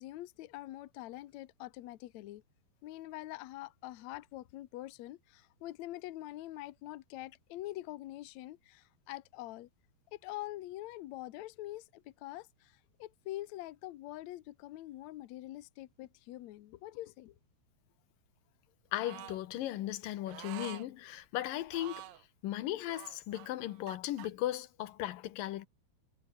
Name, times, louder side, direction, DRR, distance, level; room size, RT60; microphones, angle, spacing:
voice 1, 0.0-2.4 2.8-9.7 10.1-12.7 13.0-17.3, left 16 dB, 85° left, 1.5 m, -45 dB
voice 2, 18.9-22.0 22.4-25.7, left 14 dB, 70° left, 2.5 m, -37 dB
sound 1, 19.0-19.4 20.3-20.9 21.7-22.2 22.9-24.3, right 14 dB, 80° right, 3.3 m, -48 dB
omnidirectional pair, 4.6 m